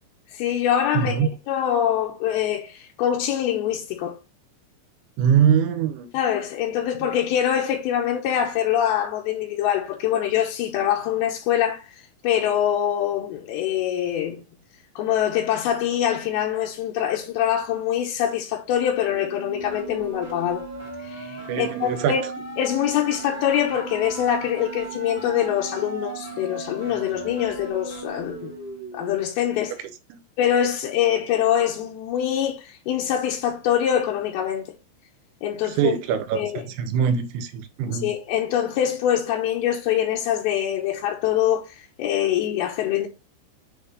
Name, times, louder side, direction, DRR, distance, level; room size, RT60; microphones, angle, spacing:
voice 1, 0.3-4.2 6.1-14.4 15.0-20.7 21.0-22.2 22.6-28.5 28.9-29.7 30.4-34.7 35.4-35.9 36.3-36.5 37.9-43.1, left 10 dB, 80° left, 2.3 m, -24 dB
voice 2, 0.9-1.3 5.2-6.1 21.5-22.3 30.1-30.2 35.6-38.1, right 8 dB, 85° right, 3.1 m, -23 dB
sound 1, 19.1-29.1, right 3 dB, 15° right, 0.5 m, -37 dB
8.3 x 3.4 x 3.8 m
omnidirectional pair, 5.4 m